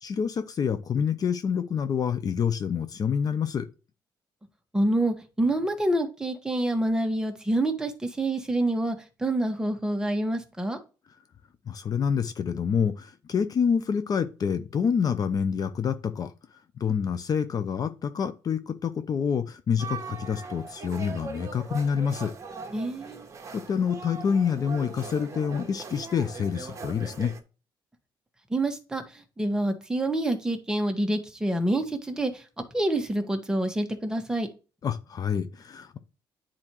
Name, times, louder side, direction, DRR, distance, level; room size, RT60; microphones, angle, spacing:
voice 1, 0.0-3.7 11.7-16.3 16.8-22.3 23.5-27.3 34.8-36.0, left 7 dB, 45° left, 0.7 m, -27 dB
voice 2, 4.7-10.8 22.7-23.3 28.5-32.4 32.7-34.5, right 1 dB, 10° right, 1.4 m, -27 dB
sound 1, 19.8-27.4, right 5 dB, 35° right, 1.3 m, -40 dB
9.9 x 4.4 x 3.0 m
cardioid pair, 95°, 9 cm